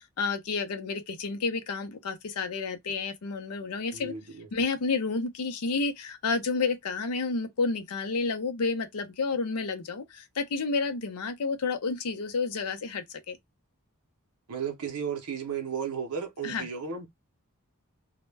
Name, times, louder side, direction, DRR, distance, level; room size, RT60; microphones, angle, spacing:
voice 1, 0.2-4.1 4.5-13.4 16.4-16.6, left 4 dB, 85° left, 0.6 m, -30 dB
voice 2, 3.9-4.5 14.5-17.1, right 7 dB, 90° right, 0.6 m, -34 dB
2.1 x 2.0 x 3.2 m
head